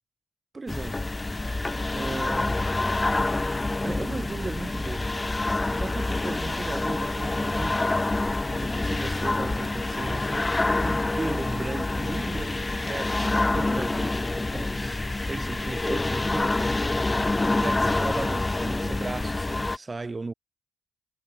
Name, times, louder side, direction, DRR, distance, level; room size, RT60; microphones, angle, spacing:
voice 1, 0.5-1.1 1.9-2.6 3.8-7.8 8.5-16.7 17.6-20.3, right 3 dB, 20° right, 3.4 m, -36 dB
sound 1, 0.7-19.8, left 2 dB, 15° left, 0.3 m, -27 dB
sound 2, 7.5-17.8, left 7 dB, 40° left, 5.0 m, -49 dB
wide cardioid pair, 175°, 0 cm